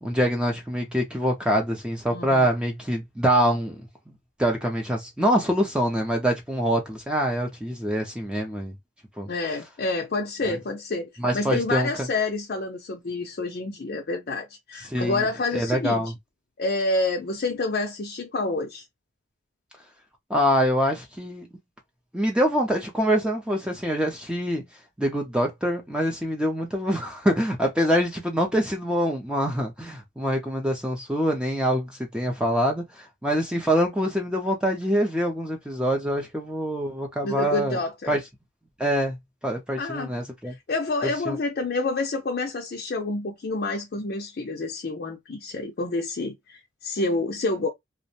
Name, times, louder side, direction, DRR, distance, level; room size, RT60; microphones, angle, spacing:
voice 1, 0.0-3.8 4.4-8.7 9.2-9.3 10.5-10.6 11.2-11.9 14.8-15.3 15.5-16.1 20.3-21.5 22.1-24.7 25.0-37.8 38.1-38.2 38.8-39.2 39.4-40.5 41.3-41.4, equal, 5° right, 0.4 m, -25 dB
voice 2, 2.1-2.5 9.3-11.1 11.3-16.0 16.6-18.8 37.2-38.2 39.8-40.1 40.5-47.7, left 3 dB, 50° left, 0.5 m, -28 dB
2.4 x 2.1 x 2.7 m
head